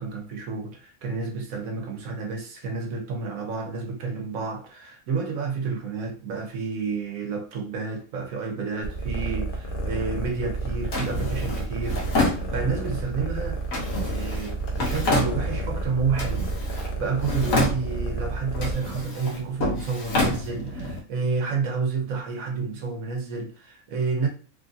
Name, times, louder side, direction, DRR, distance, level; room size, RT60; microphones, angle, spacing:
voice 1, 0.0-13.6 14.0-24.3, right 4 dB, 90° right, 1.2 m, -30 dB
sound 1, 8.8-18.7, right 2 dB, 50° left, 0.8 m, -30 dB
Drawer open or close, 10.9-13.0 13.7-15.8 16.1-16.9 17.2-18.2 18.5-21.0, left 2 dB, 80° left, 1.3 m, -28 dB
3.2 x 2.4 x 2.6 m
omnidirectional pair, 1.4 m